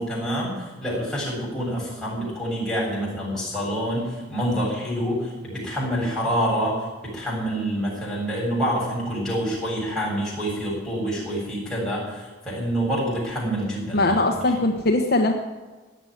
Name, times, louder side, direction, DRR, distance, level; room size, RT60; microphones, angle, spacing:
voice 1, 0.0-14.3, equal, 5° left, -5 dB, 7.3 m, -27 dB
voice 2, 13.9-15.3, left 2 dB, 50° left, 3 dB, 1.1 m, -20 dB
17.0 x 8.0 x 10.0 m, 1.3 s
head